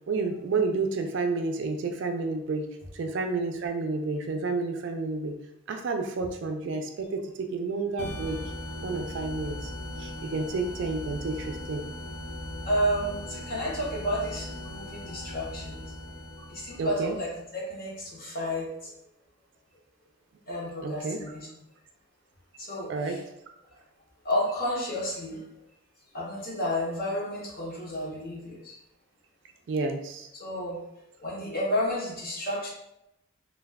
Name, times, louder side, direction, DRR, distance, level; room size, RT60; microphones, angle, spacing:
voice 1, 0.1-2.7 2.9-5.3 5.7-8.4 8.8-9.7 10.0-11.8 16.8-17.1 20.8-21.2 22.9-23.2 29.7-30.3, right 3 dB, 55° right, 5 dB, 0.3 m, -30 dB
sound 1, 8.0-17.4, left 1 dB, 85° left, 0.6 m, -39 dB
voice 2, 12.7-15.8 16.5-17.3 17.5-18.9 20.5-21.5 22.6-23.2 24.2-25.4 26.1-28.8 30.3-30.8 31.2-32.7, equal, 45° left, -3 dB, 0.8 m, -31 dB
2.2 x 2.2 x 3.3 m, 0.86 s
head